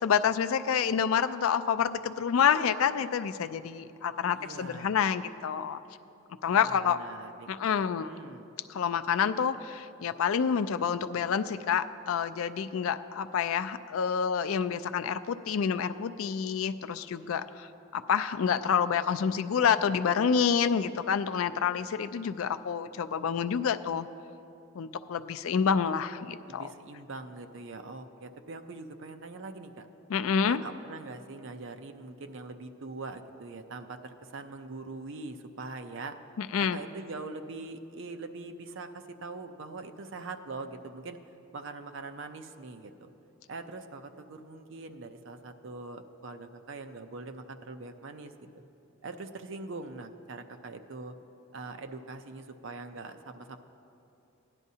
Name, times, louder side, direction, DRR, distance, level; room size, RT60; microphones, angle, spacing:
voice 1, 0.0-5.8 6.4-7.0 7.5-8.1 8.7-17.7 17.9-24.1 24.8-26.6 30.1-30.6 36.4-36.8, left 7 dB, 75° left, 11 dB, 0.4 m, -28 dB
voice 2, 4.3-5.0 6.5-7.5 7.8-8.5 26.4-29.9 30.5-36.2 36.6-41.2 41.5-43.1 43.5-48.3 49.0-51.1 51.5-53.6, right 3 dB, 60° right, 7 dB, 0.6 m, -42 dB
17.0 x 10.5 x 2.8 m, 2.8 s
head